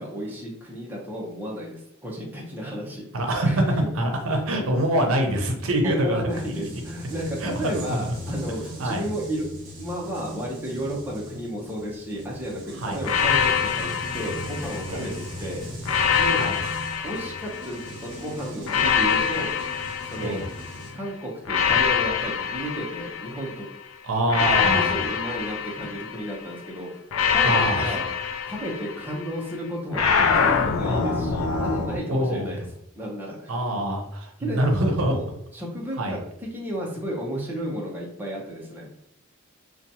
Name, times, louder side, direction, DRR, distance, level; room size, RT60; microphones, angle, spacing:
voice 1, 0.0-3.7 4.3-4.4 5.8-9.4 9.8-16.4 17.0-19.5 20.0-20.5 20.9-23.7 24.4-28.0 28.5-32.6 32.9-33.6 34.4-35.2 35.5-38.9, equal, 10° right, -4 dB, 0.5 m, -33 dB
voice 2, 3.1-3.6 3.9-6.2 7.4-8.1 8.8-9.0 12.8-13.0 14.9-15.2 16.3-16.6 20.2-20.5 24.0-24.9 27.4-28.0 32.1-32.5 33.5-35.1 36.0-36.2, right 1 dB, 90° right, 3 dB, 0.6 m, -25 dB
sound 1, 6.3-20.9, equal, 40° right, 1.1 m, -39 dB
sound 2, 13.0-15.2 15.8-18.0 18.7-20.8 21.5-23.6 24.3-26.4 27.1-29.3 29.9-32.0, left 6 dB, 80° left, 0.4 m, -25 dB
2.7 x 2.2 x 2.7 m, 0.74 s
head